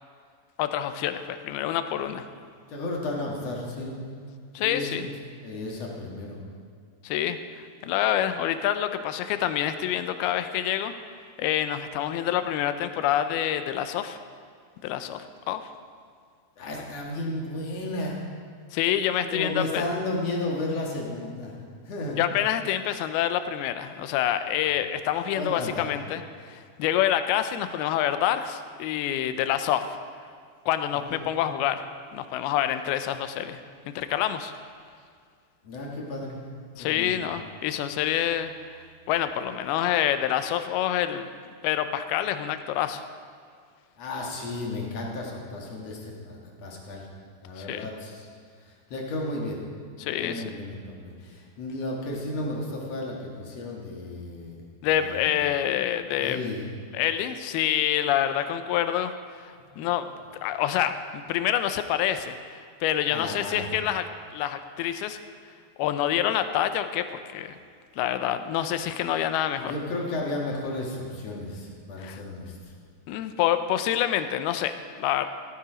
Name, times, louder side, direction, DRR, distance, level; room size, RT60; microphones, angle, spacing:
voice 1, 0.6-2.3 4.6-5.1 7.0-7.4 7.8-10.9 11.4-14.2 14.8-15.6 18.7-19.8 22.2-26.2 26.5-29.8 30.7-31.8 32.1-33.6 33.9-34.5 36.8-38.5 39.1-41.3 41.6-43.0 47.6-47.9 50.0-50.4 54.8-56.4 56.9-59.1 59.4-60.1 60.4-62.3 62.8-64.1 64.3-65.2 65.8-67.1 67.3-67.5 68.0-69.7 72.0-72.2 73.1-75.3, left 11 dB, 85° left, 10 dB, 2.5 m, -27 dB
voice 2, 2.7-4.1 4.6-5.1 5.4-6.4 16.6-18.2 19.3-22.2 25.3-26.0 30.9-31.3 35.6-36.4 36.8-37.3 44.0-47.1 47.4-48.3 48.6-49.6 50.2-54.7 54.9-55.3 56.2-56.6 59.6-59.9 63.1-63.7 69.6-72.7, left 2 dB, 50° left, -2 dB, 2.3 m, -33 dB
15.5 x 9.7 x 5.0 m, 2.1 s
omnidirectional pair, 4.5 m